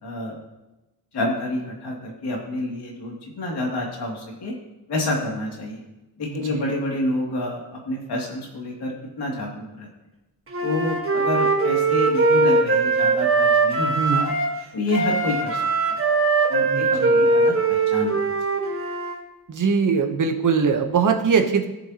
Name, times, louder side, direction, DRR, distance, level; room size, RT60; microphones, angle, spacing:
voice 1, 0.0-0.4 1.1-4.5 4.9-5.8 6.2-9.9 10.6-14.3 14.7-15.6 15.9-16.0 16.5-18.1, left 2 dB, 80° left, -1 dB, 2.7 m, -28 dB
Wind instrument woodwind instrument, 10.5-14.6 14.9-19.1, right 3 dB, 35° right, 1.4 m, -21 dB
voice 2, 14.0-14.3 16.7-17.3 19.5-21.7, right 5 dB, 50° right, 5 dB, 1.1 m, -22 dB
16.5 x 6.9 x 2.9 m, 1.0 s
wide cardioid pair, 140°, 39 cm